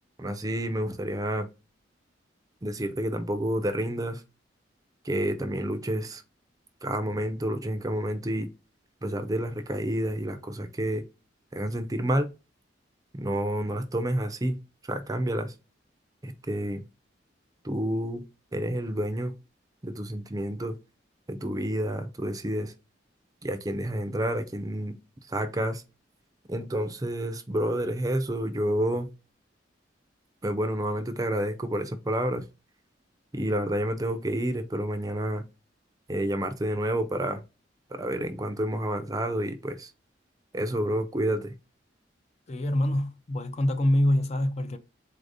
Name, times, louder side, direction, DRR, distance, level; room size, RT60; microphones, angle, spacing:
voice 1, 0.2-1.5 2.6-4.2 5.0-6.2 6.8-8.5 9.0-11.0 11.5-12.3 13.1-14.6 14.8-15.5 16.2-16.8 17.6-18.2 18.5-19.3 19.8-20.8 21.3-22.7 23.4-25.0 25.3-25.8 26.5-29.1 30.4-32.4 33.3-35.4 36.1-37.4 37.9-39.9 40.5-41.5, right 1 dB, 20° right, 0.5 m, -29 dB
voice 2, 42.5-44.8, left 1 dB, 35° left, 0.4 m, -25 dB
4.1 x 2.6 x 4.9 m
head